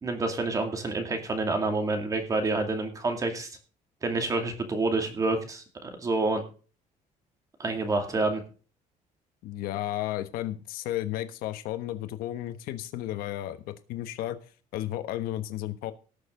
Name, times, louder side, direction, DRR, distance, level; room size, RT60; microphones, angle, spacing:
voice 1, 0.0-3.5 4.0-6.4 7.6-8.4, right 3 dB, 25° right, 5 dB, 2.4 m, -28 dB
voice 2, 9.4-14.4 14.7-15.9, left 13 dB, 85° left, 10 dB, 1.3 m, -33 dB
18.5 x 6.7 x 3.8 m, 0.37 s
cardioid pair, 170°, 15 cm